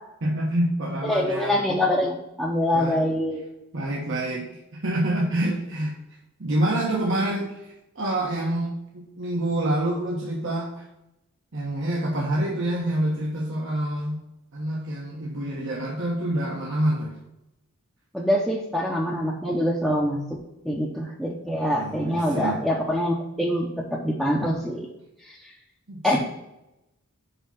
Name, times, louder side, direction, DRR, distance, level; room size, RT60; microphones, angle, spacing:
voice 1, 0.2-1.6 2.7-3.0 3.7-5.9 6.4-10.8 11.5-14.2 14.5-17.2 21.7-22.6 25.9-26.2, right 1 dB, 60° right, -3 dB, 1.2 m, -27 dB
voice 2, 1.1-3.4 18.1-20.2 20.6-23.7 24.0-24.9 26.0-26.2, equal, ahead, -4 dB, 0.8 m, -24 dB
5.8 x 5.5 x 5.8 m, 0.89 s
head